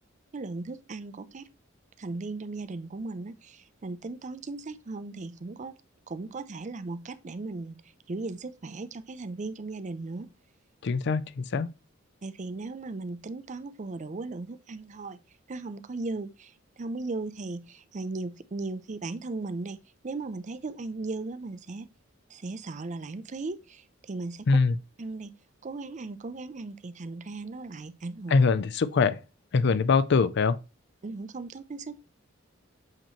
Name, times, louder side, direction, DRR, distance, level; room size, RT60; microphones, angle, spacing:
voice 1, 0.3-1.5 2.0-5.7 6.1-7.8 8.1-10.3 12.2-15.2 15.5-19.8 20.0-21.9 22.3-24.6 25.0-25.3 25.6-28.3 31.0-32.0, right 3 dB, 35° right, 0.5 m, -37 dB
voice 2, 10.8-11.7 24.5-24.8 28.3-29.2 29.5-30.6, left 4 dB, 55° left, 0.4 m, -23 dB
7.7 x 3.0 x 4.3 m
head